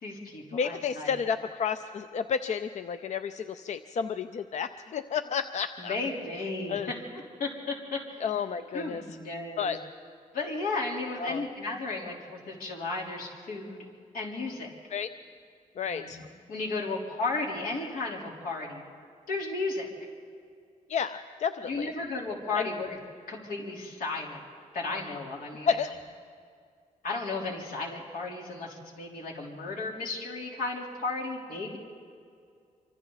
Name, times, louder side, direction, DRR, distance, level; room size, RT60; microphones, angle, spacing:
voice 1, 0.0-1.1 5.8-6.8 7.1-8.2 8.7-9.7 10.3-13.8 14.1-14.7 15.8-18.9 19.3-19.9 21.6-23.0 23.3-24.4 24.7-25.7 27.0-31.8, left 3 dB, 85° left, -2 dB, 3.7 m, -34 dB
voice 2, 0.5-6.0 6.7-6.9 8.2-9.0 9.6-9.8 11.2-11.5 14.9-15.1 15.8-16.2 20.9-21.9 22.5-22.7 25.7-25.9, left 6 dB, 55° left, 11 dB, 0.5 m, -31 dB
25.5 x 25.5 x 4.0 m, 2.3 s
wide cardioid pair, 155°, 14 cm